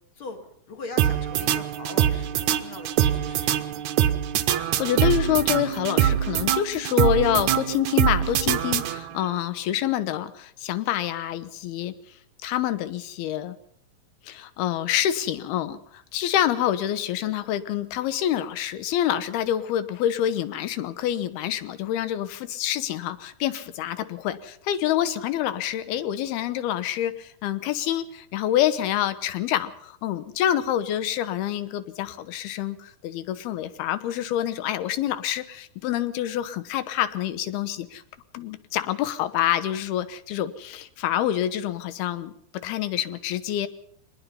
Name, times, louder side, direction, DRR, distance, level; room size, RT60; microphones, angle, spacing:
voice 1, 0.2-3.6, left 3 dB, 40° left, 5 dB, 2.3 m, -40 dB
sound 1, 1.0-9.3, right 10 dB, 75° right, 1.7 m, -24 dB
voice 2, 4.5-11.9 12.4-13.6 14.2-38.0 38.3-42.3 42.6-43.7, left 11 dB, 80° left, 13 dB, 2.9 m, -27 dB
23.5 x 20.0 x 5.6 m, 0.66 s
omnidirectional pair, 4.5 m